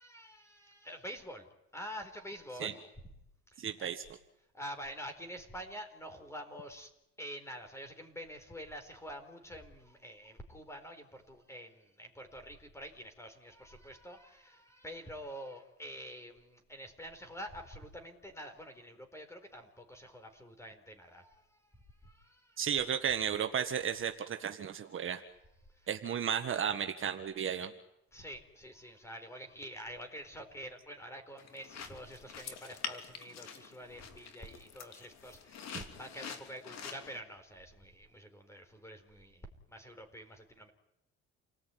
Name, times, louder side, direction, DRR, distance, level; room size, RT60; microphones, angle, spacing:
voice 1, 0.0-2.9 3.5-3.9 4.5-6.9 7.2-22.6 25.6-25.9 28.1-40.7, equal, 10° left, 6 dB, 4.3 m, -47 dB
voice 2, 3.6-4.0 22.6-25.2 25.9-27.7 35.7-35.8, right 8 dB, 45° right, 6 dB, 1.6 m, -34 dB
sound 1, 31.4-37.2, left 7 dB, 65° left, 3.0 m, -46 dB
29.0 x 19.5 x 9.3 m, 0.84 s
cardioid pair, 140°, 29 cm